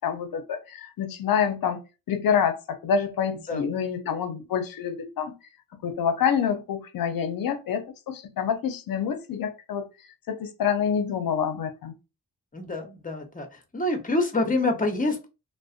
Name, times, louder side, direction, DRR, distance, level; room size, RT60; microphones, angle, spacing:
voice 1, 0.0-1.8 2.1-5.4 5.8-9.9 10.3-11.9, left 7 dB, 60° left, 0.6 m, -27 dB
voice 2, 12.5-13.5 13.7-15.3, left 2 dB, 20° left, 0.7 m, -26 dB
2.4 x 2.1 x 2.4 m
cardioid pair, 70°, 39 cm